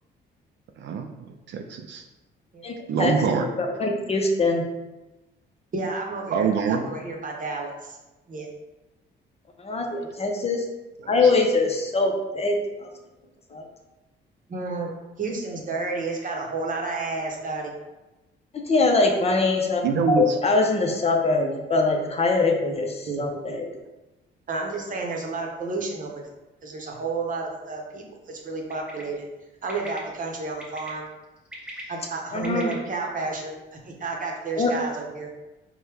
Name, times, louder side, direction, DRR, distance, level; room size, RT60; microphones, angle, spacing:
voice 1, 0.8-2.0 2.9-3.5 6.3-6.9 11.0-11.3 19.8-20.4, right 6 dB, 65° right, 5 dB, 0.4 m, -25 dB
voice 2, 2.6-4.6 9.6-10.6 11.1-12.6 12.8-12.9 13.5-13.6 18.5-19.8 20.1-23.7 32.3-32.7 34.6-34.7, left 3 dB, 30° left, 1 dB, 0.6 m, -23 dB
voice 3, 5.7-8.0 8.3-8.5 14.5-14.9 15.2-17.7 23.1-23.2 24.5-26.3 26.6-29.3 29.6-31.1 31.9-35.3, right 3 dB, 40° right, 1 dB, 0.8 m, -31 dB
Bird, 28.7-29.0 29.7-30.0 30.6-30.9 31.4-32.7, right 1 dB, 5° right, 1.0 m, -40 dB
4.3 x 2.2 x 3.4 m, 1.1 s
cardioid pair, 90°, 20 cm